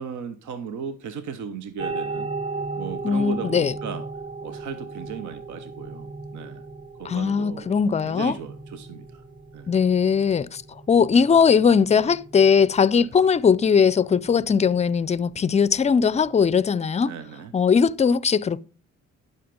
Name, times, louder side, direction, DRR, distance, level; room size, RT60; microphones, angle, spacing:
voice 1, 0.0-2.3 2.8-4.0 4.4-6.6 7.0-7.8 8.0-9.2 9.5-9.7 11.0-11.1 12.9-13.1 15.3-15.6 17.0-17.5, right 6 dB, 75° right, 0.9 m, -36 dB
sound 1, 1.8-16.5, right 3 dB, 15° right, 0.9 m, -37 dB
voice 2, 3.0-3.7 7.0-8.3 9.7-10.6 10.9-17.1 17.5-18.6, left 6 dB, 25° left, 0.4 m, -19 dB
11.0 x 5.7 x 5.2 m
cardioid pair, 90°, 30 cm